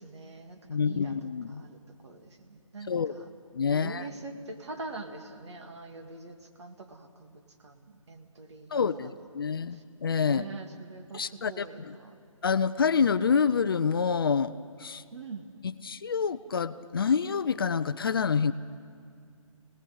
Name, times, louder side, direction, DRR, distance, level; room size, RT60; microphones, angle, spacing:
voice 1, 0.0-3.3 3.7-9.1 9.5-9.8 10.2-12.2 15.1-15.5, right 3 dB, 55° right, 5 dB, 2.2 m, -44 dB
voice 2, 0.7-1.6 2.9-3.1 3.5-4.0 8.7-10.4 11.1-11.9 12.4-14.5 14.8-15.0 15.9-18.5, left 6 dB, 40° left, 13 dB, 0.6 m, -27 dB
26.5 x 19.0 x 7.9 m, 2.2 s
figure-of-eight pair, 160°, 18 cm